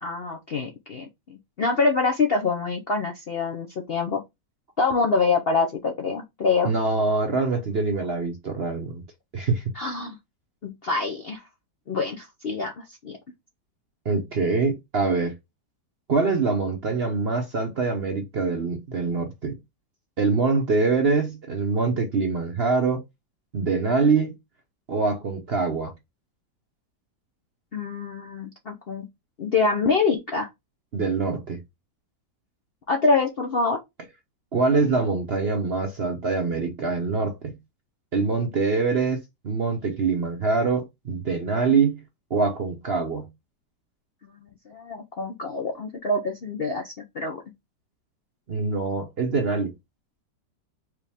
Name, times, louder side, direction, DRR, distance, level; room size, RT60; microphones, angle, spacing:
voice 1, 0.0-4.2 4.8-6.7 9.7-10.2 10.6-11.4 11.9-13.2 27.7-29.1 29.4-30.5 32.9-33.8 44.2-47.4, left 4 dB, 50° left, 0.7 m, -25 dB
voice 2, 6.6-9.0 9.3-9.6 14.0-15.3 16.1-19.6 20.2-23.0 23.5-24.3 24.9-25.9 30.9-31.6 34.5-37.6 38.1-42.0 42.3-43.3 48.5-49.7, right 4 dB, 50° right, 0.8 m, -24 dB
4.8 x 3.0 x 3.4 m
omnidirectional pair, 1.9 m